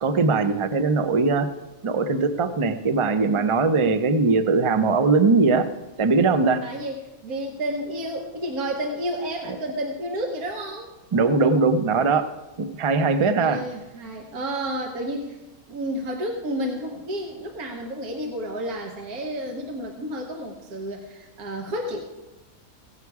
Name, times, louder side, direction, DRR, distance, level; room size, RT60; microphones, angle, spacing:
voice 1, 0.0-1.5 1.8-5.7 6.0-6.6 11.1-12.3 12.6-13.6, right 4 dB, 35° right, 9 dB, 0.5 m, -20 dB
voice 2, 6.6-10.9 13.4-15.4 15.7-22.0, right 1 dB, 80° right, 1 dB, 1.6 m, -31 dB
16.5 x 8.3 x 4.7 m, 1.1 s
omnidirectional pair, 1.5 m